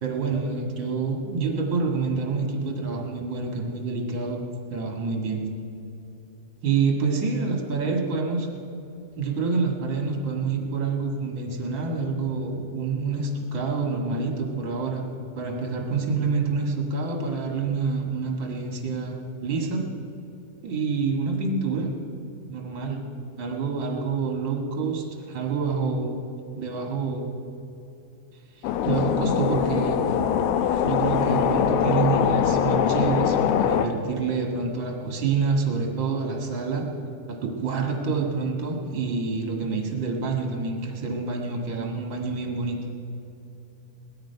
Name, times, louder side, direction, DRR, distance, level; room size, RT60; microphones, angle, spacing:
voice 1, 0.0-4.4 4.7-5.5 6.6-8.5 9.2-15.0 15.4-19.9 20.6-21.9 22.5-23.0 23.4-26.2 26.5-27.3 28.6-30.0 30.8-36.9 37.3-42.8, right 4 dB, 45° right, 2 dB, 1.8 m, -27 dB
sound 1, 28.6-33.9, left 9 dB, 85° left, 2.6 m, -23 dB
19.0 x 13.0 x 5.7 m, 2.9 s
omnidirectional pair, 4.3 m